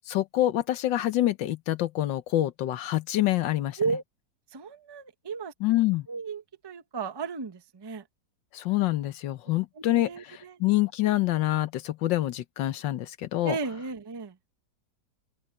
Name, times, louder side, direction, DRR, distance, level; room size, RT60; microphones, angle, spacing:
voice 1, 0.1-3.8 5.6-6.1 8.5-13.5, left 15 dB, 85° left, 1.6 m, -26 dB
voice 2, 4.5-5.5 6.1-8.0 9.8-10.6 13.4-14.4, right 5 dB, 25° right, 0.6 m, -34 dB
open air
omnidirectional pair, 1.9 m